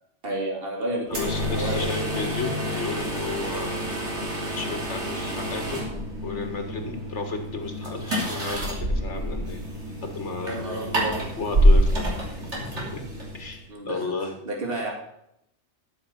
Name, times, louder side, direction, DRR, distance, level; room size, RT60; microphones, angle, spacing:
voice 1, 0.2-1.9 10.4-11.2 13.7-14.0 14.4-14.9, right 1 dB, 55° right, 0 dB, 2.6 m, -31 dB
voice 2, 1.1-3.8 4.5-5.8 6.2-9.6 10.0-11.0 11.4-12.4 12.9-13.0 13.3-14.4, left 3 dB, 80° left, 5 dB, 2.1 m, -33 dB
sound 1, 1.1-13.6, equal, 80° right, 3.5 m, -27 dB
13.0 x 7.2 x 6.0 m, 0.77 s
omnidirectional pair, 1.2 m